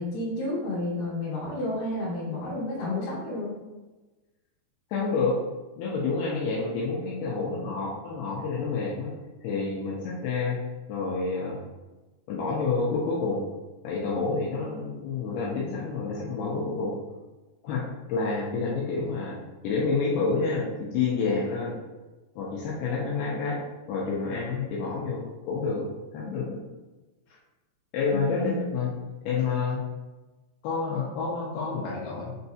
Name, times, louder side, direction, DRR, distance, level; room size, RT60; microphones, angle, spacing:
voice 1, 0.0-3.6 28.1-28.6, left 2 dB, 70° left, -9 dB, 2.5 m, -31 dB
voice 2, 4.9-5.4 5.8-9.1 9.4-10.6 10.9-11.6 12.3-13.5 13.8-17.0 17.6-19.4 19.6-21.8 22.4-23.6 23.9-25.9 26.1-26.6 27.9-28.9 29.3-29.8 30.6-32.3, left 4 dB, 90° left, -5 dB, 2.3 m, -28 dB
6.5 x 2.7 x 2.3 m, 1.2 s
omnidirectional pair, 5.1 m